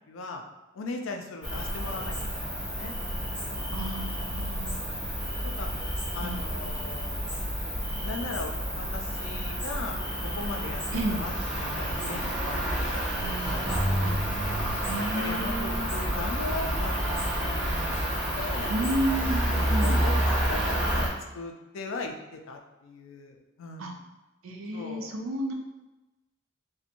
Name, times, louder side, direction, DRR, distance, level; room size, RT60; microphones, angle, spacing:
voice 1, 0.1-0.4 0.7-2.9 3.5-3.8 4.0-4.1 4.4-4.6 5.4-5.7 6.1-7.5 7.8-10.8 11.1-12.2 12.5-12.8 13.2-14.3 14.9-18.0 18.3-18.8 19.5-21.1 21.3-24.0 24.7-25.1, left 3 dB, 70° left, 3 dB, 0.4 m, -39 dB
Cricket, 1.4-21.1, equal, 5° right, 0.5 m, -29 dB
voice 2, 3.7-4.9 6.2-6.4 10.9-11.2 14.0-14.2 14.9-15.8 18.7-20.1 23.8-23.9 24.4-25.5, right 1 dB, 85° right, 2 dB, 0.4 m, -31 dB
2.5 x 2.1 x 2.7 m, 1.0 s
head